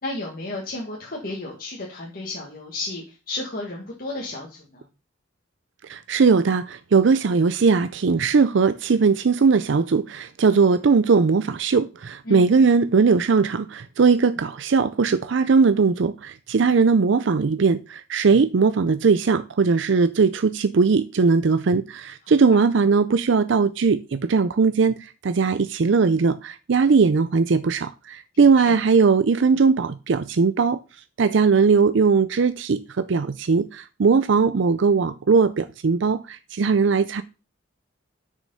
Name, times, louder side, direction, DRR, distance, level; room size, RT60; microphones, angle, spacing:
voice 1, 0.0-4.8 12.3-12.5 22.5-22.6 28.3-28.8, left 2 dB, 45° left, 1.8 m, -33 dB
voice 2, 5.9-30.8 31.2-37.2, right 5 dB, 60° right, 0.5 m, -19 dB
6.4 x 6.2 x 5.5 m
head